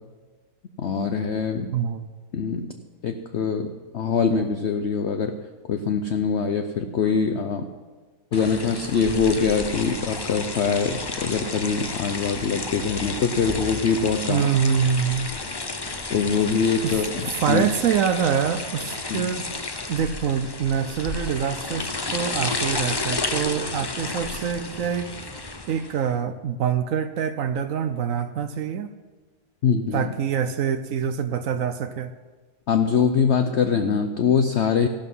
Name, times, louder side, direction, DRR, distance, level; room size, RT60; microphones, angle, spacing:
voice 1, 0.8-1.7 2.3-2.8 3.0-5.3 5.7-7.7 8.3-14.5 16.1-17.6 19.1-19.3 29.6-30.1 32.7-34.9, left 6 dB, 55° left, 7 dB, 0.8 m, -23 dB
voice 2, 1.7-2.1 14.3-15.3 16.8-17.0 17.4-19.5 19.9-28.9 29.9-32.1, right 7 dB, 65° right, 11 dB, 0.9 m, -25 dB
sound 1, 8.3-26.0, left 3 dB, 30° left, 0.4 m, -31 dB
14.5 x 12.0 x 5.5 m, 1.4 s
omnidirectional pair, 1.7 m